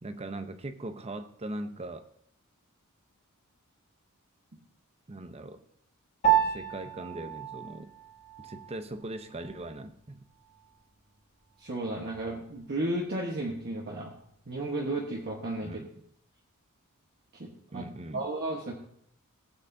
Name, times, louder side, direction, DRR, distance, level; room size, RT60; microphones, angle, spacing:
voice 1, 0.0-2.1 5.1-5.6 6.4-7.9 8.4-10.2 15.6-16.0 17.7-18.3, right 2 dB, 30° right, 9 dB, 0.7 m, -40 dB
Piano, 6.2-15.9, right 10 dB, 30° left, 1.3 m, -34 dB
voice 2, 11.6-14.1 14.5-15.8 17.3-17.8 18.1-18.7, right 1 dB, 45° right, -1 dB, 1.2 m, -33 dB
17.5 x 8.2 x 2.7 m, 0.70 s
head